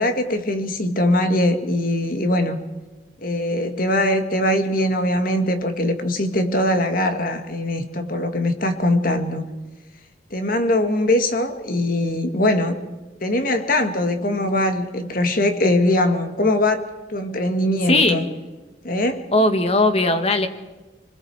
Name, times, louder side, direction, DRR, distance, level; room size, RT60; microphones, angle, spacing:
voice 1, 0.0-2.6 3.2-9.4 10.3-12.8 13.2-18.3 18.8-19.2, left 1 dB, 50° left, 6 dB, 1.9 m, -21 dB
voice 2, 17.9-18.2 19.3-20.5, left 2 dB, 35° left, 7 dB, 1.7 m, -18 dB
28.5 x 21.0 x 4.8 m, 1.2 s
head